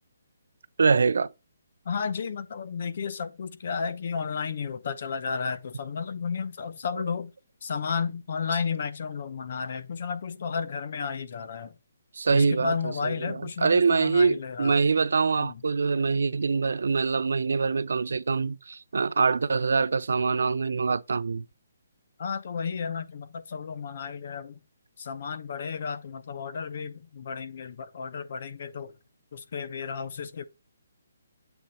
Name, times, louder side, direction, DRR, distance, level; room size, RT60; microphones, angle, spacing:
voice 1, 0.8-1.3 6.9-7.0 12.2-21.4, right 4 dB, 70° right, 0.4 m, -24 dB
voice 2, 1.8-7.3 7.6-11.7 12.3-14.8 15.4-15.6 22.2-24.6 25.0-28.9 29.3-30.4, left 6 dB, 40° left, 0.7 m, -33 dB
8.0 x 3.0 x 4.2 m
hypercardioid pair, 175°, 0 cm